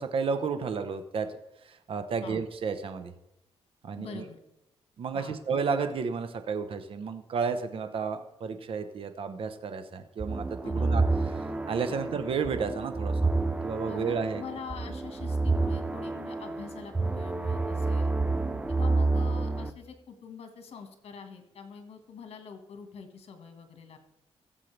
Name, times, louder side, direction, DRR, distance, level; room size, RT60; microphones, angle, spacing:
voice 1, 0.0-1.3 1.6-3.1 3.8-4.3 5.0-11.0 11.3-13.3 13.6-14.4, right 5 dB, 60° right, 8 dB, 0.9 m, -32 dB
voice 2, 4.0-4.4 5.1-5.4 10.6-10.9 11.9-12.1 13.9-18.1 18.7-24.0, left 6 dB, 70° left, 6 dB, 1.6 m, -44 dB
sound 1, 10.2-19.7, right 3 dB, 10° right, 0.5 m, -29 dB
16.5 x 7.5 x 3.3 m, 0.85 s
cardioid pair, 95°, 11 cm